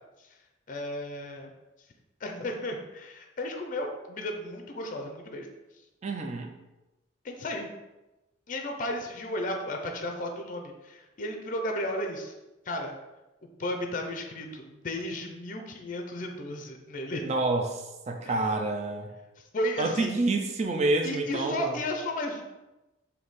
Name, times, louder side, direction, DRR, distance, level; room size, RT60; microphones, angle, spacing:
voice 1, 0.7-1.5 2.2-5.5 7.2-7.7 8.5-12.3 12.7-13.0 13.6-17.2 18.2-18.4 19.5-20.1 21.0-22.4, left 1 dB, 40° left, 3 dB, 0.5 m, -34 dB
voice 2, 6.0-6.5 17.2-19.1 19.8-21.8, right 2 dB, 35° right, 3 dB, 0.4 m, -28 dB
3.6 x 2.7 x 4.0 m, 1.0 s
head